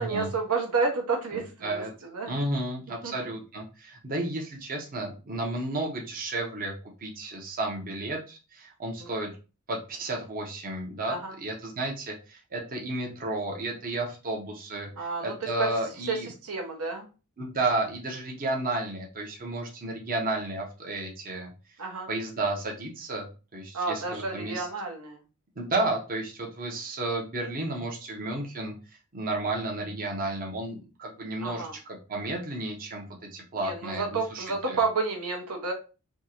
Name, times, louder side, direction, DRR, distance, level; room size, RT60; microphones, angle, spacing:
voice 1, 0.0-2.3 3.0-3.1 9.0-9.1 11.1-11.3 15.0-15.7 16.1-16.2 16.4-17.1 21.8-22.1 23.7-25.2 31.4-31.8 33.5-35.7, right 4 dB, 75° right, 2 dB, 0.9 m, -30 dB
voice 2, 1.3-1.9 2.3-9.3 9.7-16.3 17.4-21.5 22.1-24.7 25.6-28.7 29.1-33.0 33.3-34.8, right 2 dB, 40° right, -1 dB, 0.8 m, -32 dB
3.6 x 2.7 x 2.9 m, 0.32 s
head